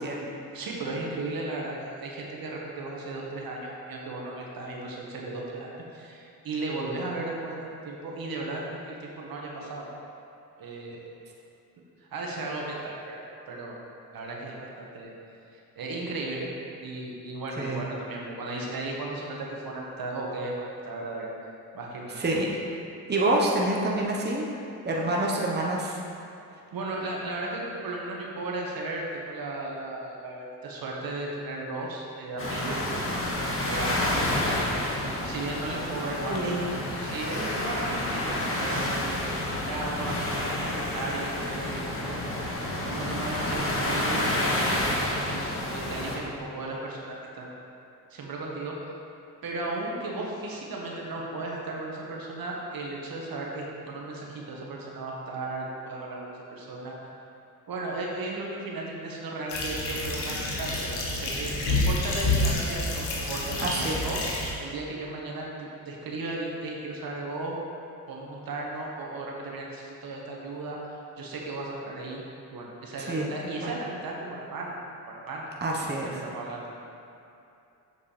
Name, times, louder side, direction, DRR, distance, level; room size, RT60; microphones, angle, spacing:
voice 1, 0.0-0.3 17.6-17.8 22.2-22.5 23.1-24.4 24.8-26.0 36.3-36.8 63.6-64.0 73.0-73.3 73.6-73.7 75.6-76.1, right 2 dB, 25° right, -3 dB, 1.1 m, -27 dB
voice 2, 0.5-9.9 10.6-11.1 12.0-13.2 13.5-13.8 14.1-15.1 15.8-16.5 16.8-21.3 21.7-22.2 26.7-33.2 33.6-34.0 34.6-36.4 36.7-39.4 39.7-42.2 42.9-47.5 48.1-48.7 49.4-56.9 57.7-64.2 64.6-67.6 68.1-70.8 71.2-72.2 72.5-74.7 75.1-75.4 75.8-76.7, right 2 dB, 60° right, -2 dB, 1.4 m, -35 dB
sound 1, 32.4-46.2, left 1 dB, 30° left, 1.7 m, -29 dB
sound 2, 59.5-64.5, left 2 dB, 80° left, 1.3 m, -28 dB
7.3 x 6.4 x 3.3 m, 2.7 s
supercardioid pair, 55°, 40 cm